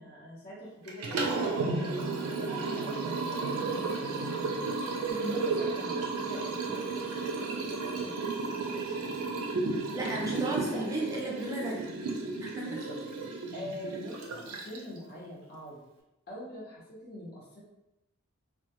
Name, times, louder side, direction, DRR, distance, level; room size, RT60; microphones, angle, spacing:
voice 1, 0.0-1.9 2.3-3.0 3.3-4.6 5.3-8.1 8.5-9.2 10.1-10.9 12.7-12.9 13.5-15.8 16.3-17.6, equal, 45° left, -6 dB, 0.7 m, -45 dB
Liquid, 0.9-15.0, right 3 dB, 90° right, 0.4 m, -33 dB
voice 2, 5.1-5.4 9.9-11.9 12.5-12.8, right 2 dB, 15° right, -3 dB, 0.5 m, -34 dB
2.2 x 2.1 x 2.7 m, 0.93 s
head